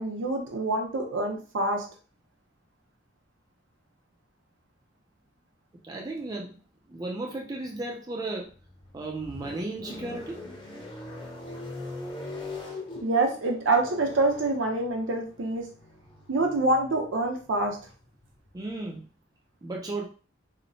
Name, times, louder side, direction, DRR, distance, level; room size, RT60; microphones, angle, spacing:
voice 1, 0.0-1.8 13.0-15.7 16.3-17.8, right 2 dB, 75° right, 2 dB, 0.6 m, -26 dB
voice 2, 5.8-6.6 6.9-8.5 8.9-10.4 18.5-19.0 19.6-20.1, right 2 dB, 20° right, -1 dB, 0.3 m, -34 dB
sound 1, 8.5-18.7, left 2 dB, 25° left, 0.6 m, -42 dB
2.8 x 2.0 x 2.6 m, 0.38 s
head